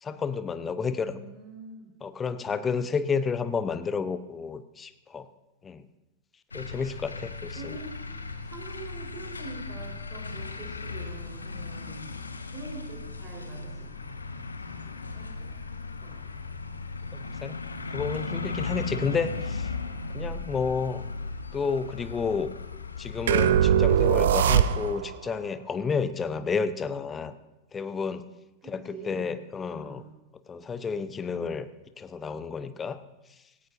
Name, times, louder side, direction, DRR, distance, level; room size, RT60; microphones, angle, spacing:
voice 1, 0.0-1.2 2.0-5.3 5.6-5.9 6.5-7.8 17.1-17.6 17.9-19.7 20.1-21.0 21.5-22.5 23.0-27.3 27.7-28.2 28.7-30.0 30.5-31.7 32.0-33.0, left 5 dB, 20° left, 13 dB, 0.7 m, -31 dB
voice 2, 1.0-1.9 7.6-7.9 8.4-12.2 12.5-16.4 28.6-29.3 29.7-30.0, right 3 dB, 25° right, -1 dB, 4.2 m, -45 dB
sound 1, 6.5-24.9, left 4 dB, 80° left, 0.9 m, -37 dB
sound 2, 23.3-25.2, right 9 dB, 60° right, 0.5 m, -21 dB
17.0 x 16.5 x 2.7 m, 0.98 s
figure-of-eight pair, 90°, 0 cm